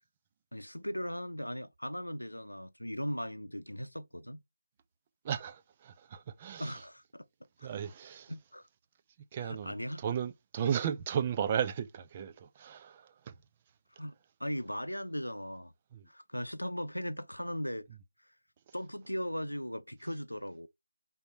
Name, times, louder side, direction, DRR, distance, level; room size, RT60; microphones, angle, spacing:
voice 1, 0.5-4.4 6.6-7.3 7.6-7.7 8.3-8.7 9.4-10.0 14.0-15.7 16.1-17.9 18.7-20.7, equal, 90° left, 0.7 m, -38 dB
voice 2, 5.2-6.8 7.6-8.3 9.3-13.3 15.9-16.1, right 8 dB, 20° right, 0.5 m, -35 dB
5.7 x 3.9 x 4.3 m
figure-of-eight pair, 160°, 0 cm